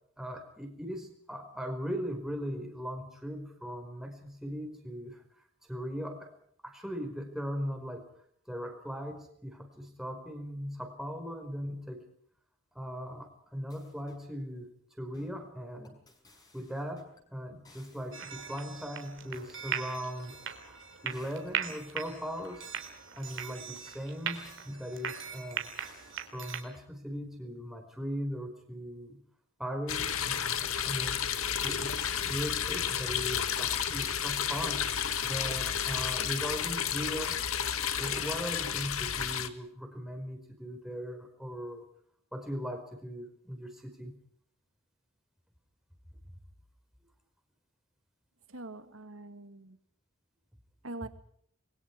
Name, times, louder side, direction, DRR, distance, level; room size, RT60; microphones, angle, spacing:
voice 1, 0.2-5.2 5.7-6.3 6.6-8.1 8.5-12.0 12.7-14.7 15.0-16.0 16.5-20.3 20.6-20.8 21.0-22.8 23.1-25.7 26.3-29.2 29.6-31.2 31.6-34.9 35.2-37.4 37.9-41.8 42.3-44.2, equal, ahead, 4 dB, 4.8 m, -39 dB
sound 1, 13.7-14.3 15.1-15.4 15.8-17.2 17.6-18.8 19.3-20.6 21.1-21.9 22.4-23.9 24.3-25.1 25.6-26.2, left 2 dB, 20° left, 5.9 m, -60 dB
sound 2, 18.1-26.6, right 8 dB, 65° right, 3.5 m, -39 dB
sound 3, 29.9-39.5, left 8 dB, 90° left, 1.9 m, -32 dB
voice 2, 48.5-49.8 50.8-51.1, right 2 dB, 80° right, 9 dB, 2.3 m, -43 dB
29.5 x 22.5 x 4.7 m, 0.65 s
head